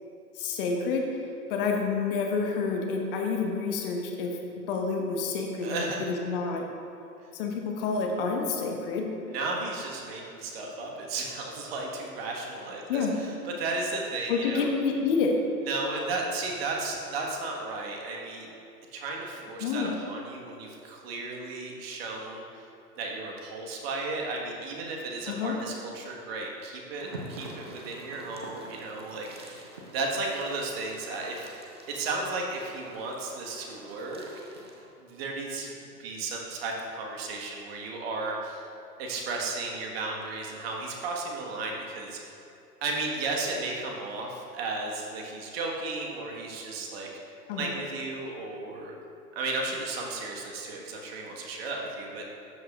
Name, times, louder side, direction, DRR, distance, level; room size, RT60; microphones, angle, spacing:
voice 1, 0.3-1.0 1.5-4.4 4.7-6.6 7.3-9.1 12.9-13.1 14.3-15.3 19.6-19.9 25.3-25.5 47.5-47.7, left 5 dB, 35° left, 1 dB, 1.1 m, -28 dB
voice 2, 5.6-6.1 9.3-14.7 15.6-18.5 18.9-22.7 23.0-34.3 35.0-38.6 39.0-42.4 42.8-47.1 47.6-48.9 49.3-52.3, right 3 dB, 40° right, 0 dB, 1.5 m, -34 dB
sound 1, 27.0-34.9, right 1 dB, 20° right, 0.4 m, -46 dB
13.0 x 7.8 x 2.4 m, 2.7 s
hypercardioid pair, 125°, 49 cm